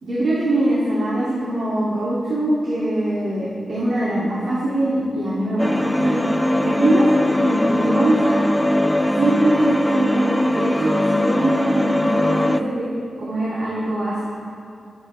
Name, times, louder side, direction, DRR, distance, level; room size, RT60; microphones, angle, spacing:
voice 1, 0.0-6.2 6.6-7.1 7.4-8.3 9.2-12.8 13.2-14.2, right 1 dB, 60° right, -8 dB, 2.4 m, -22 dB
sound 1, 5.6-12.6, left 1 dB, 10° left, 0.3 m, -20 dB
20.0 x 8.6 x 3.3 m, 2.7 s
wide cardioid pair, 135°, 0 cm